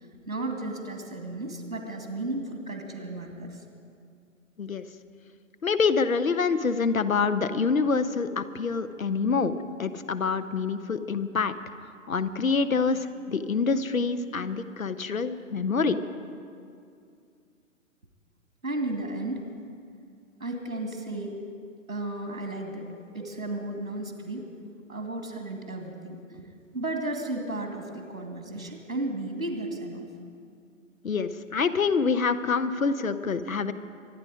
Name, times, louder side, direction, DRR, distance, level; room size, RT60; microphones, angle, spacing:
voice 1, 0.3-3.6 18.6-19.4 20.4-21.4 21.9-22.9 23.1-24.5 24.9-26.4 26.7-30.1, right 2 dB, 90° right, 3 dB, 2.4 m, -34 dB
voice 2, 5.6-11.5 12.1-16.0 31.0-33.7, left 5 dB, 75° left, 12 dB, 0.9 m, -26 dB
24.0 x 10.0 x 5.0 m, 2.4 s
figure-of-eight pair, 120°, 41 cm